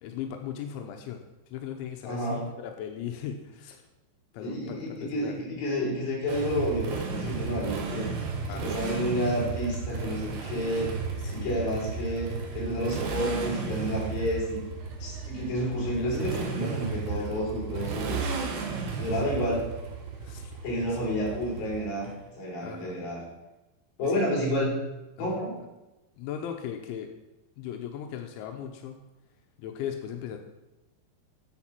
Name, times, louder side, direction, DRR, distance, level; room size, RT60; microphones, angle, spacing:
voice 1, 0.0-1.2 1.5-3.8 4.3-5.4 8.5-8.8 11.2-11.7 15.9-16.5 17.2-17.6 19.2-19.4 20.2-20.6 20.9-21.2 22.6-23.0 24.0-24.2 25.2-25.4 26.2-27.1 27.6-29.0 29.6-30.4, left 9 dB, 90° left, 5 dB, 3.2 m, -38 dB
voice 2, 2.0-2.4 4.4-8.1 8.6-10.9 11.3-14.6 15.0-18.2 19.0-19.7 20.6-22.1 22.4-23.2 24.0-24.8 25.2-25.6, equal, 55° left, -3 dB, 5.4 m, -30 dB
Motorcycle, 6.3-22.1, right 4 dB, 70° right, 3.6 m, -34 dB
10.0 x 8.1 x 6.0 m, 1.0 s
omnidirectional pair, 5.2 m